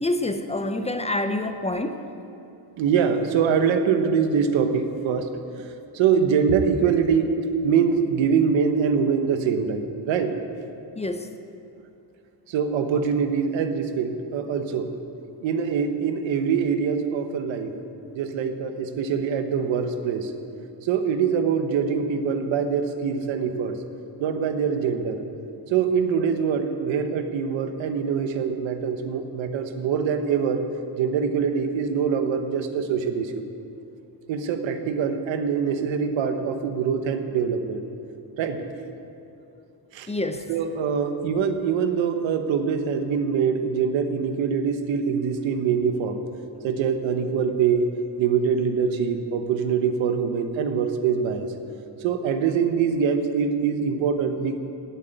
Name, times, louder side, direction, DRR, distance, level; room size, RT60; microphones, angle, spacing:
voice 1, 0.0-2.1 11.0-11.3 40.1-40.5, left 2 dB, 15° left, 7 dB, 0.7 m, -27 dB
voice 2, 2.8-5.3 5.9-7.4 7.6-10.4 12.5-14.9 15.4-17.7 18.1-20.3 20.8-23.8 24.2-25.2 25.7-30.6 31.0-33.3 34.3-37.8 38.4-38.6 39.9-40.1 40.5-46.2 46.6-47.8 48.2-51.5 52.0-54.6, right 6 dB, 85° right, 8 dB, 1.1 m, -24 dB
11.5 x 8.3 x 8.1 m, 2.7 s
cardioid pair, 95°, 45 cm